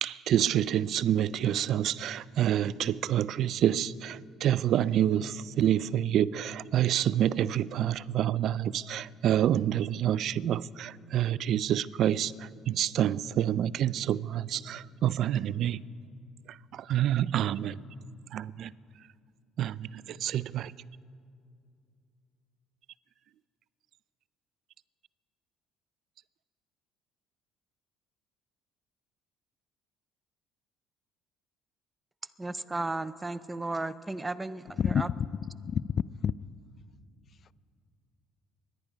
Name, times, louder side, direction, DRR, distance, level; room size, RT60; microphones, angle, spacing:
voice 1, 0.0-15.8 16.5-17.8 18.3-18.7 19.6-20.7, right 11 dB, 60° right, 0.3 m, -28 dB
voice 2, 32.4-35.1, right 2 dB, 20° right, 0.6 m, -34 dB
voice 3, 34.8-35.2 35.6-36.3, left 7 dB, 50° left, 0.3 m, -28 dB
24.0 x 10.5 x 5.1 m
hypercardioid pair, 65°, 0 cm